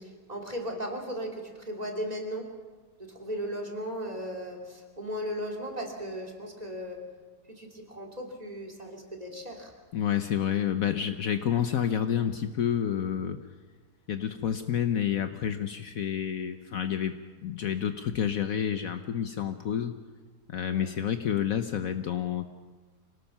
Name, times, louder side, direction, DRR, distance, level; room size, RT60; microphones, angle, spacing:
voice 1, 0.0-2.5 3.0-7.1 7.5-9.7 20.7-21.0, equal, 25° right, 2 dB, 2.9 m, -36 dB
voice 2, 9.9-13.4 14.1-20.0 20.5-22.5, left 9 dB, 65° left, 9 dB, 1.1 m, -29 dB
26.0 x 18.5 x 5.9 m, 1.4 s
omnidirectional pair, 1.8 m